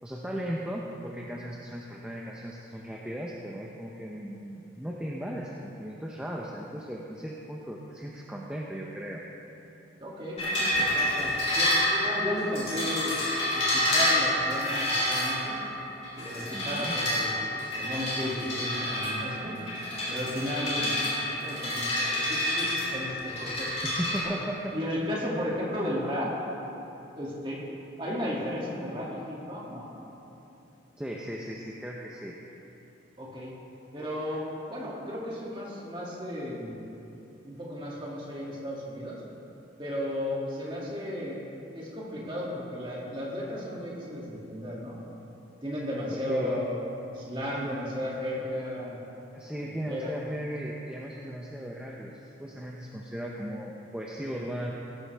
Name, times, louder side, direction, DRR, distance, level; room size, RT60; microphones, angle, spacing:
voice 1, 0.0-9.2 16.5-17.0 23.8-24.7 31.0-32.4 46.1-46.6 47.6-47.8 48.5-48.6 49.3-54.7, equal, 5° right, -3 dB, 0.7 m, -37 dB
voice 2, 10.0-13.2 13.5-15.6 16.1-19.5 20.1-20.9 21.4-23.7 24.2-24.4 24.7-26.3 27.2-27.7 28.0-30.0 33.2-33.5 33.9-36.8 37.5-39.2 39.8-41.4 41.7-45.0 45.6-46.8 47.1-49.0 49.6-50.1, equal, 25° right, -5 dB, 2.4 m, -34 dB
sound 1, 10.4-24.2, left 1 dB, 35° left, 3.1 m, -28 dB
16.5 x 13.0 x 3.4 m, 3.0 s
head